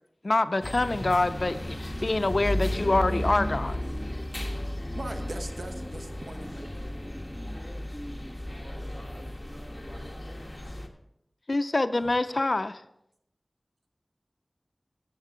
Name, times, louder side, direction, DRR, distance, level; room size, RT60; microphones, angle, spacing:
voice 1, 0.2-1.5 2.0-3.8 11.5-12.7, left 2 dB, 65° left, 12 dB, 0.4 m, -25 dB
sound 1, 0.6-10.9, left 1 dB, 25° left, 1.3 m, -34 dB
voice 2, 1.3-2.0 7.2-10.6, equal, 10° right, -2 dB, 3.0 m, -48 dB
voice 3, 4.9-6.9 12.0-12.1, right 2 dB, 75° right, 6 dB, 0.9 m, -41 dB
14.0 x 8.0 x 3.7 m, 0.82 s
wide cardioid pair, 50°, 0 cm